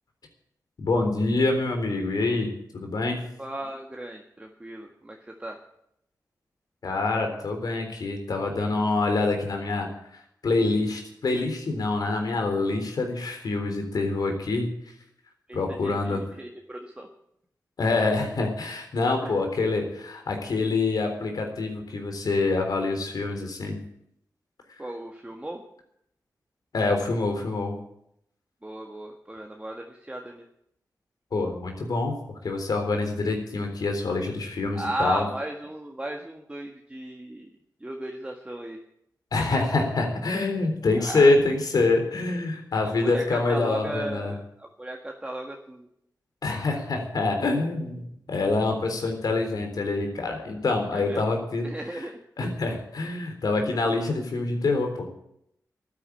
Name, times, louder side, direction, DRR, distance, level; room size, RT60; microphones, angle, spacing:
voice 1, 0.8-3.2 6.8-9.9 10.4-14.7 15.5-16.2 17.8-23.8 26.7-27.8 31.3-35.3 39.3-44.3 46.4-48.0 48.3-51.7 52.4-55.1, left 3 dB, 70° left, 4 dB, 3.7 m, -26 dB
voice 2, 3.4-5.6 15.5-17.1 19.2-19.4 24.8-25.6 28.6-30.4 34.7-37.5 37.8-38.8 40.9-41.3 42.8-45.9 50.9-51.3 51.6-52.2, right 1 dB, 15° right, 1 dB, 1.7 m, -36 dB
12.5 x 10.0 x 8.6 m, 0.75 s
cardioid pair, 60°, 7 cm